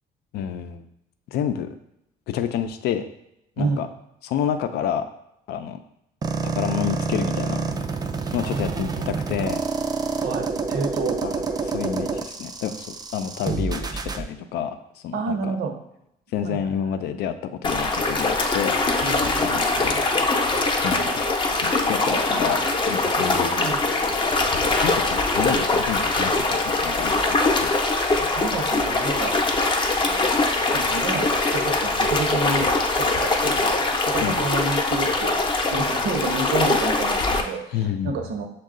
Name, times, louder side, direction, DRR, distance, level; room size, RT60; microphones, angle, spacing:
voice 1, 0.3-0.8 1.3-1.7 2.3-3.0 3.6-3.9 4.2-5.1 5.5-5.8 6.4-7.6 8.3-9.6 11.2-14.8 15.0-15.5 16.3-17.4 17.6-18.8 19.4-19.7 20.8-21.2 21.6-22.6 22.9-23.5 24.8-27.7 34.2-34.4 37.7-38.1, left 9 dB, 75° left, 9 dB, 0.4 m, -29 dB
sound 1, 6.2-14.2, right 4 dB, 25° right, 0.4 m, -27 dB
voice 2, 8.4-9.3 10.2-11.2 11.5-11.6 15.1-15.7 16.4-16.7 19.0-20.0 23.2-23.8 28.3-29.4 30.5-35.4 35.7-38.5, right 3 dB, 75° right, 4 dB, 0.9 m, -30 dB
sound 2, 17.6-37.4, left 3 dB, 30° left, 0.6 m, -22 dB
6.4 x 2.3 x 3.7 m, 0.80 s
cardioid pair, 110°, 17 cm